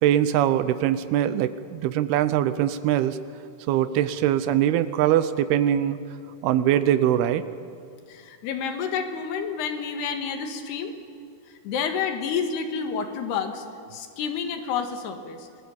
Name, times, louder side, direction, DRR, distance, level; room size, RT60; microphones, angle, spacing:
voice 1, 0.0-3.2 3.7-6.0 6.4-7.4, right 11 dB, 80° right, 13 dB, 2.7 m, -22 dB
voice 2, 8.1-10.9 11.7-13.7 13.9-15.5, left 6 dB, 85° left, 6 dB, 3.6 m, -29 dB
27.0 x 20.0 x 7.2 m, 2.3 s
omnidirectional pair, 4.6 m